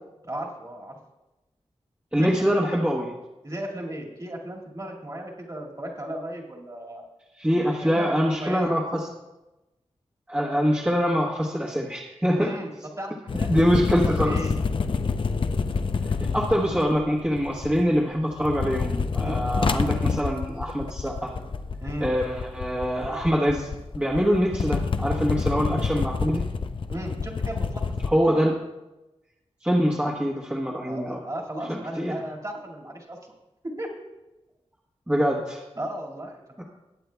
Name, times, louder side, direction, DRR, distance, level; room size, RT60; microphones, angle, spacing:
voice 1, 0.2-0.9 2.1-2.8 3.4-7.0 7.8-8.6 12.3-12.7 13.0-13.5 14.0-14.5 19.2-19.4 21.8-22.1 26.9-27.8 30.8-33.3 33.8-33.9 35.8-36.4, right 1 dB, 30° right, -1 dB, 2.0 m, -35 dB
voice 2, 2.1-3.1 7.4-9.0 10.3-12.5 13.5-14.4 16.2-21.3 22.0-26.4 28.1-28.5 29.6-31.2 31.7-32.1 35.1-35.6 36.6-36.7, equal, 10° right, -4 dB, 1.2 m, -24 dB
sound 1, 13.3-18.0 18.3-28.1, left 4 dB, 50° left, 0.6 m, -28 dB
20.0 x 8.5 x 2.3 m, 1.0 s
wide cardioid pair, 90°, 11 cm